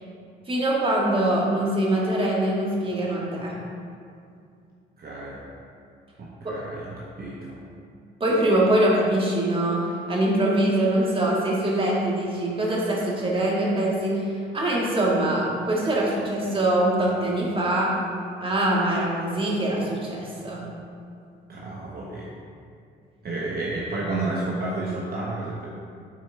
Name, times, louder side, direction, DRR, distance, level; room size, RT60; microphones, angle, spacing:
voice 1, 0.5-3.5 6.4-6.5 8.2-14.3 14.5-17.9 18.4-20.6, right 1 dB, 25° right, -4 dB, 1.7 m, -23 dB
voice 2, 5.0-5.4 6.2-7.6 21.5-22.3 23.2-25.7, right 2 dB, 50° right, -4 dB, 1.0 m, -31 dB
8.8 x 4.4 x 3.3 m, 2.3 s
cardioid pair, 90°, 20 cm